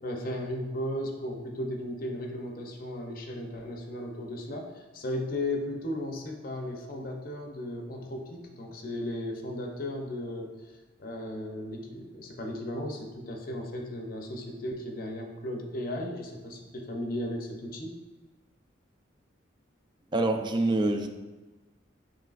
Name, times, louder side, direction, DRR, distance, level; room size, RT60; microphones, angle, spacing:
voice 1, 0.0-18.0, left 1 dB, 50° left, 2 dB, 0.6 m, -36 dB
voice 2, 20.1-21.1, right 2 dB, 25° right, 5 dB, 0.3 m, -25 dB
6.4 x 3.1 x 2.4 m, 1.2 s
head